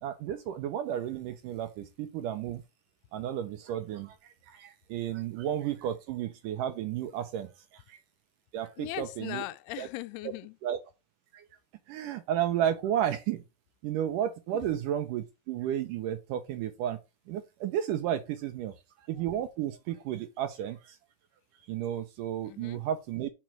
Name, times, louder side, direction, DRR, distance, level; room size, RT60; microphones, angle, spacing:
voice 1, 0.0-2.6 3.1-8.0 8.5-9.5 9.8-9.9 10.6-10.8 11.3-11.5 11.9-13.4 13.8-17.0 17.3-21.0 21.5-23.3, right 10 dB, 75° right, 2.1 m, -33 dB
voice 2, 8.8-10.6 14.5-14.6 22.5-22.8, left 17 dB, 90° left, 2.6 m, -39 dB
6.2 x 5.8 x 4.6 m
omnidirectional pair, 4.4 m